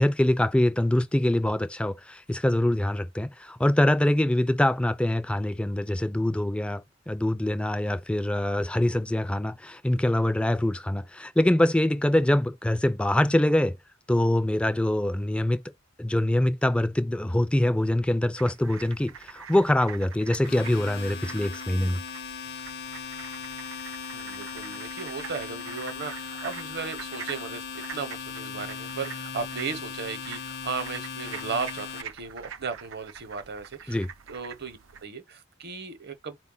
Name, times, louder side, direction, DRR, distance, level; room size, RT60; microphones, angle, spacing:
voice 1, 0.0-13.8 14.1-15.6 16.0-22.0 33.9-34.1, left 1 dB, 5° left, 0.4 m, -24 dB
sound 1, 18.4-35.1, right 7 dB, 85° right, 0.6 m, -45 dB
Domestic sounds home sounds, 20.1-32.0, left 6 dB, 55° left, 0.6 m, -38 dB
voice 2, 24.1-34.0 34.3-36.4, right 5 dB, 55° right, 0.8 m, -36 dB
4.3 x 2.2 x 3.8 m
head